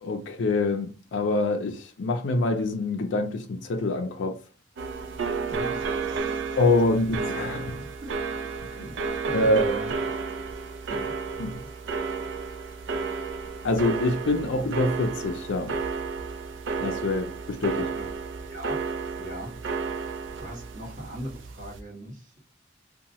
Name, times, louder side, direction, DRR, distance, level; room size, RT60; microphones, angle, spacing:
voice 1, 0.0-4.4 6.6-7.8 9.3-9.7 11.4-11.6 13.6-15.8 16.8-17.9, left 2 dB, 80° left, 0.4 m, -25 dB
sound 1, 4.8-21.8, right 4 dB, 90° right, 0.4 m, -32 dB
voice 2, 5.5-6.6 7.7-8.1 8.8-8.9 9.2-10.1 10.9-11.0 17.8-18.1 18.5-18.9 19.2-19.5 20.4-22.4, right 1 dB, 45° right, 1.3 m, -39 dB
2.7 x 2.2 x 2.9 m
head